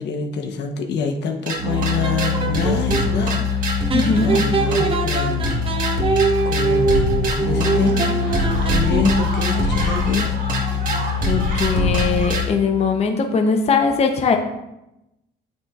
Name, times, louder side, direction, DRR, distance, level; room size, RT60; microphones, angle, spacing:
voice 1, 0.0-5.6 6.4-10.3, left 5 dB, 65° left, 4 dB, 1.0 m, -26 dB
sound 1, 1.5-12.5, left 3 dB, 45° right, 1.5 m, -22 dB
sound 2, 1.6-12.3, right 1 dB, 75° right, 3.0 m, -33 dB
sound 3, 1.7-3.1 3.9-9.4, right 5 dB, 30° right, 0.8 m, -23 dB
voice 2, 3.9-4.5 11.2-14.4, left 4 dB, 35° left, 4 dB, 0.8 m, -20 dB
8.6 x 8.5 x 2.4 m, 0.91 s
cardioid pair, 120°, 19 cm